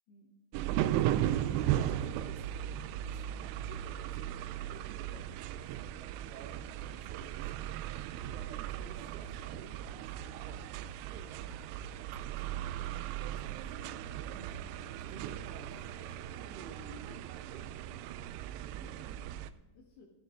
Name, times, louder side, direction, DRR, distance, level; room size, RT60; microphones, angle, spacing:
sound 1, 0.5-19.5, right 12 dB, 85° right, 2.4 m, -37 dB
voice 1, 1.4-12.9 13.3-13.8 14.3-17.7, right 5 dB, 70° right, 6 dB, 3.0 m, -53 dB
voice 2, 18.7-20.1, left 3 dB, 65° left, -2 dB, 3.3 m, -59 dB
13.5 x 13.5 x 3.6 m, 1.1 s
omnidirectional pair, 5.3 m